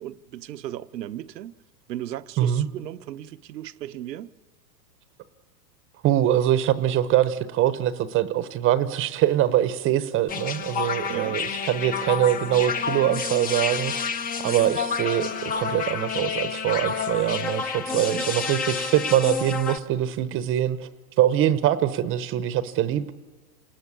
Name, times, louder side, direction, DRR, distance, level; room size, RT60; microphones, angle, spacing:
voice 1, 0.0-1.6 1.9-4.3 11.1-11.4 17.9-18.3, right 12 dB, 85° right, 1.1 m, -36 dB
voice 2, 6.0-14.1 14.4-20.9 21.2-23.1, right 12 dB, 25° right, 0.9 m, -23 dB
sound 1, 10.3-19.8, left 6 dB, 20° left, 0.8 m, -29 dB
27.5 x 19.5 x 8.4 m
supercardioid pair, 140°, 48 cm